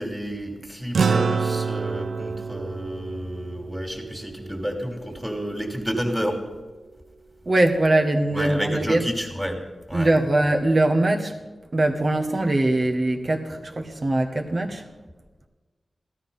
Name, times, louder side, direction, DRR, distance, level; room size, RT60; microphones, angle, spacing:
voice 1, 0.0-6.4 8.3-9.6 9.9-10.1, equal, ahead, 3.0 m, -30 dB
sound 1, 0.9-5.6, right 5 dB, 85° right, 0.9 m, -28 dB
voice 2, 7.4-9.0 9.9-11.4 11.7-14.9, right 2 dB, 40° right, 1.6 m, -22 dB
15.0 x 13.0 x 5.7 m
wide cardioid pair, 105°, 0 cm